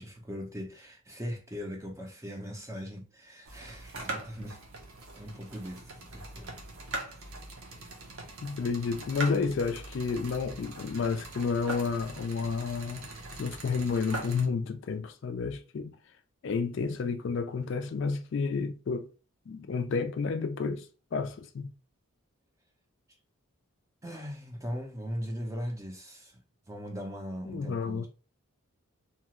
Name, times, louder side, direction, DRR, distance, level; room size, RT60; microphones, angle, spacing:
voice 1, 0.0-4.6 5.2-6.5 7.0-7.3 24.0-26.4 26.7-28.1, equal, 15° right, 0.5 m, -39 dB
sound 1, 3.4-14.4, right 2 dB, 80° right, 0.7 m, -42 dB
voice 2, 8.4-13.1 13.4-15.9 16.4-19.1 19.5-21.7 27.5-28.1, left 5 dB, 55° left, 0.3 m, -31 dB
2.8 x 2.4 x 2.9 m
head